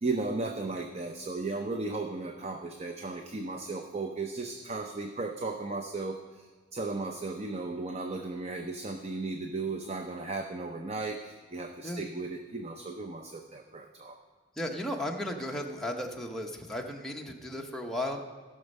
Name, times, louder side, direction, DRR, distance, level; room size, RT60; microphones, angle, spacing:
voice 1, 0.0-14.2, right 3 dB, 35° right, 4 dB, 0.6 m, -35 dB
voice 2, 14.5-18.2, left 1 dB, ahead, 0 dB, 0.9 m, -35 dB
16.0 x 6.2 x 5.4 m, 1.5 s
head